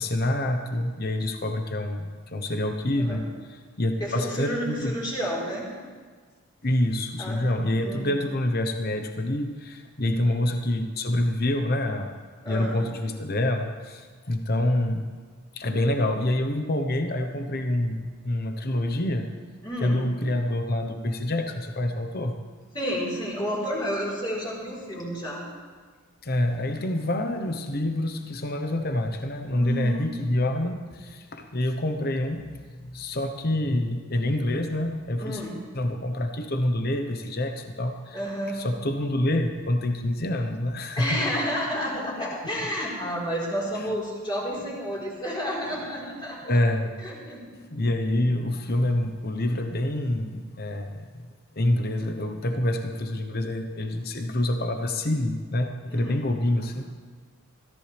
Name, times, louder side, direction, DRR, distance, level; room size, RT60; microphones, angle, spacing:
voice 1, 0.0-5.0 6.6-12.2 12.5-15.0 15.5-19.3 19.8-22.3 26.2-35.5 35.7-38.2 38.5-41.2 43.7-43.9 46.4-46.9 47.7-51.3 51.6-56.9, left 1 dB, 45° left, 6 dB, 1.0 m, -27 dB
voice 2, 4.0-5.7 7.2-8.0 10.1-10.2 12.4-12.8 19.6-20.0 22.7-25.4 29.6-30.1 35.2-35.6 38.1-38.6 40.9-46.6 47.0-47.6 55.9-56.2, equal, 20° left, -5 dB, 4.3 m, -31 dB
21.0 x 14.0 x 3.4 m, 1.5 s
head